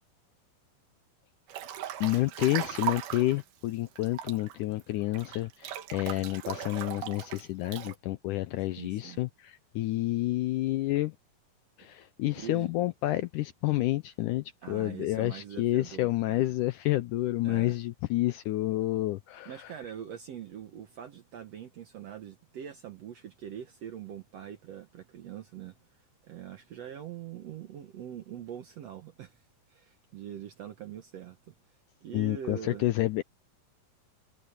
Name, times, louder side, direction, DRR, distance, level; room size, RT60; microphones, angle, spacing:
Breathing / Bathtub (filling or washing) / Splash splatter, 1.5-3.4 4.0-7.9, right 11 dB, 85° right, 3.4 m, -38 dB
voice 1, 2.0-11.2 11.8-19.7 32.1-33.2, left 16 dB, 80° left, 1.9 m, -29 dB
voice 2, 8.8-9.2 12.3-12.7 14.6-16.4 17.4-17.7 19.4-25.7 26.2-29.4 29.7-31.5 32.0-32.9, right 9 dB, 65° right, 1.6 m, -43 dB
omnidirectional pair, 4.2 m